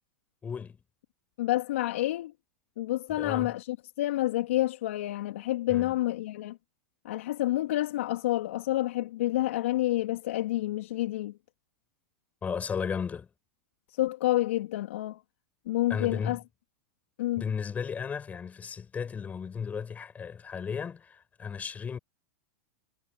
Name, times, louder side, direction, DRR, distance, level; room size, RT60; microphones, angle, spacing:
voice 1, 0.4-0.8 3.2-3.5 5.7-6.0 12.4-13.3 15.9-16.4 17.4-22.0, left 6 dB, 20° left, 7.5 m, -35 dB
voice 2, 1.4-2.3 2.8-6.6 7.1-11.3 14.0-15.2 15.7-16.4 17.2-17.4, left 15 dB, 75° left, 3.4 m, -29 dB
hypercardioid pair, 115°, 7 cm